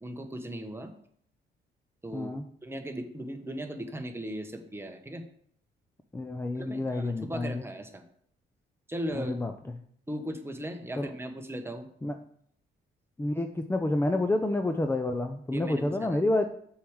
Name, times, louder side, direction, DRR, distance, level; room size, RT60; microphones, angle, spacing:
voice 1, 0.0-0.9 2.0-5.2 6.5-8.0 8.9-9.3 10.1-11.9 15.5-16.2, right 1 dB, 10° right, 5 dB, 1.2 m, -37 dB
voice 2, 2.1-2.4 6.1-7.6 9.1-9.5 11.0-11.1 12.0-12.1 13.2-16.5, left 2 dB, 10° left, 6 dB, 0.6 m, -29 dB
6.7 x 4.8 x 6.5 m, 0.64 s
cardioid pair, 90°, 20 cm